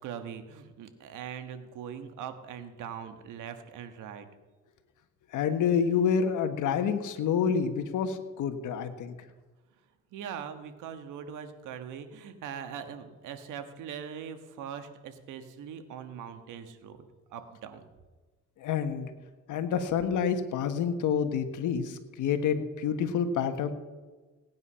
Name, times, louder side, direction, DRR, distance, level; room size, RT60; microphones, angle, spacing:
voice 1, 0.0-4.3 10.1-17.0 17.3-17.8, right 8 dB, 90° right, 8 dB, 1.5 m, -41 dB
voice 2, 5.3-9.1 18.6-19.1 19.5-23.7, left 7 dB, 80° left, 8 dB, 1.4 m, -28 dB
18.0 x 9.5 x 5.7 m, 1.3 s
cardioid pair, 90°, 30 cm